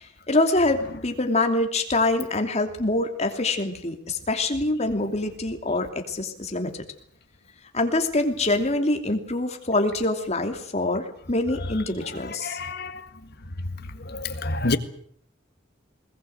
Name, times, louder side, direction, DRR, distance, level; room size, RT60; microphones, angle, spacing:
voice 1, 0.0-6.7 7.7-12.6, left 2 dB, 35° left, 2.9 m, -25 dB
voice 2, 12.4-13.0 14.1-14.8, left 2 dB, 55° left, 1.8 m, -27 dB
21.0 x 20.5 x 8.0 m
head